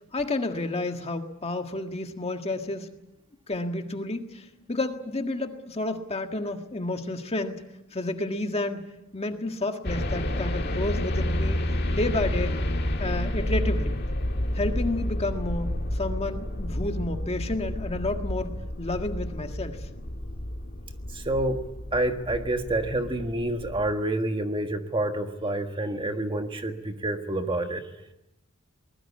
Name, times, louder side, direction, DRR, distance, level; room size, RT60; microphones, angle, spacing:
voice 1, 0.1-2.9 3.5-7.6 7.9-8.8 9.1-11.6 11.9-12.6 13.0-14.0 14.5-19.9, left 2 dB, 30° left, 5 dB, 1.7 m, -30 dB
sound 1, 9.8-23.9, left 1 dB, 50° left, 1.9 m, -30 dB
voice 2, 21.1-21.6 21.9-27.8, right 1 dB, 25° right, 6 dB, 1.6 m, -28 dB
23.0 x 20.5 x 8.6 m, 0.91 s
head